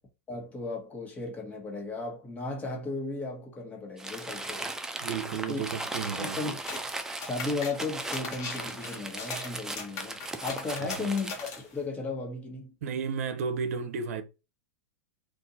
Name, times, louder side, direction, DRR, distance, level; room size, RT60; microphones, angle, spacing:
voice 1, 0.3-4.7 5.5-5.6 6.1-6.6 7.2-12.7, left 3 dB, 20° left, 1.3 m, -35 dB
Crumpling crinkling, 4.0-11.6, right 2 dB, 5° right, 0.4 m, -38 dB
voice 2, 5.0-6.4 10.8-11.1 12.8-14.2, right 6 dB, 65° right, 0.7 m, -33 dB
sound 1, 6.6-6.9 7.2-11.8, left 4 dB, 40° left, 1.2 m, -40 dB
2.6 x 2.6 x 4.0 m
hypercardioid pair, 110°, 8 cm